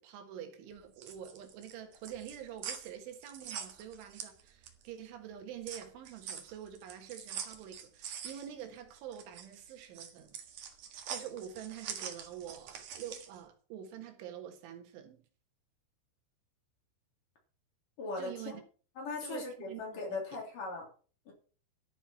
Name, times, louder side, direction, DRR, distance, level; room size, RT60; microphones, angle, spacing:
voice 1, 0.0-10.4 11.1-15.2 18.2-18.6 19.2-20.2, right 10 dB, 75° right, 3.9 m, -46 dB
sound 1, 0.8-4.9 5.3-13.4, right 8 dB, 60° right, 2.3 m, -44 dB
voice 2, 18.0-18.5 19.0-20.9 21.3-21.4, left 3 dB, 45° left, 4.4 m, -39 dB
12.0 x 6.9 x 5.8 m
omnidirectional pair, 5.6 m